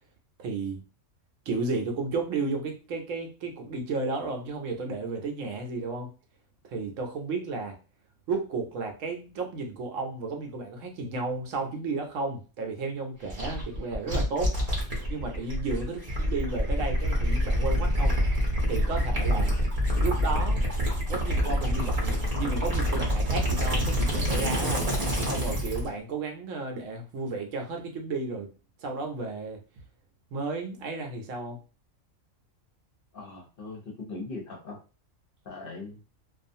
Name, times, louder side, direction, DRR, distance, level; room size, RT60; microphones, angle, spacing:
voice 1, 0.4-0.8 1.5-6.1 6.6-7.7 8.3-14.5 15.1-18.1 18.7-19.5 20.0-20.7 21.1-24.9 25.2-28.5 28.8-29.6 30.3-31.6, right 3 dB, 70° right, 3 dB, 1.0 m, -33 dB
Gurgling / Liquid, 13.3-25.9, equal, 35° right, 0.7 m, -26 dB
voice 2, 33.1-34.8 35.4-36.0, left 3 dB, 50° left, -1 dB, 0.8 m, -40 dB
2.4 x 2.4 x 2.6 m, 0.34 s
omnidirectional pair, 1.4 m